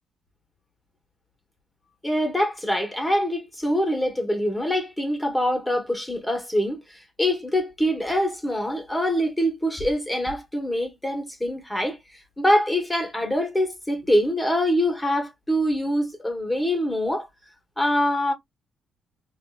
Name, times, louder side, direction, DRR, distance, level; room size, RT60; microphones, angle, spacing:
voice 1, 2.0-17.3 17.8-18.3, equal, 5° left, 1.2 m, -24 dB
3.7 x 2.6 x 2.3 m
cardioid pair, 90°, 0 cm